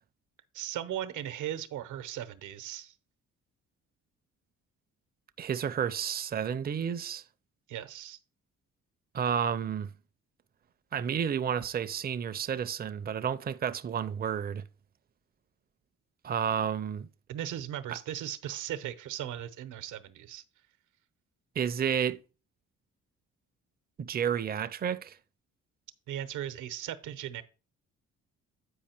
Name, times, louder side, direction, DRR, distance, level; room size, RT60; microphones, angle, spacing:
voice 1, 0.5-2.9 7.7-8.2 17.3-20.4 26.1-27.4, right 11 dB, 80° right, 0.8 m, -37 dB
voice 2, 5.4-7.2 9.1-9.9 10.9-14.6 16.2-17.1 17.9-18.0 21.6-22.2 24.0-25.2, right 8 dB, 30° right, 0.5 m, -31 dB
8.6 x 4.9 x 4.4 m
cardioid pair, 90°, 30 cm